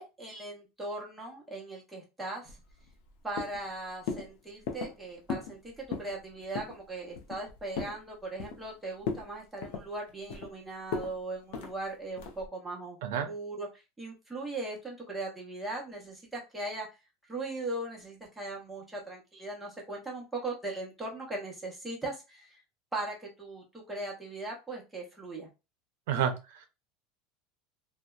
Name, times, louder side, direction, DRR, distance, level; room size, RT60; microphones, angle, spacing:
voice 1, 0.0-2.6 3.2-13.0 13.3-13.7 14.0-16.9 17.3-22.6 22.9-25.5, right 2 dB, 5° right, -3 dB, 0.6 m, -39 dB
sound 1, 2.5-3.1 3.4-3.7 4.1-4.3 4.7-5.0 5.3-5.6 5.8-6.1 6.5-6.8 7.2-8.0 8.4-8.7 9.0-9.3 9.6-10.5 10.9-11.1 11.5-11.7 12.2-12.5, left 5 dB, 60° left, 0.5 m, -36 dB
voice 2, 26.1-26.7, right 8 dB, 70° right, 7 dB, 0.5 m, -30 dB
2.7 x 2.0 x 2.2 m, 0.27 s
supercardioid pair, 175°, 0 cm